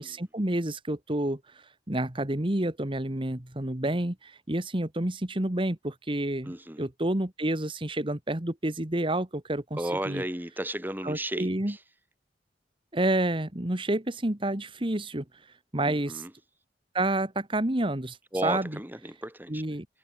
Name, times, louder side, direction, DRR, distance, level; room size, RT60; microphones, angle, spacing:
voice 1, 0.0-10.2 11.0-11.7 12.9-15.5 15.7-16.2 16.9-18.8 19.5-19.9, right 1 dB, 30° right, 1.8 m, -29 dB
voice 2, 6.4-6.9 9.8-11.8 15.8-16.3 18.3-19.8, right 1 dB, 10° right, 3.6 m, -34 dB
head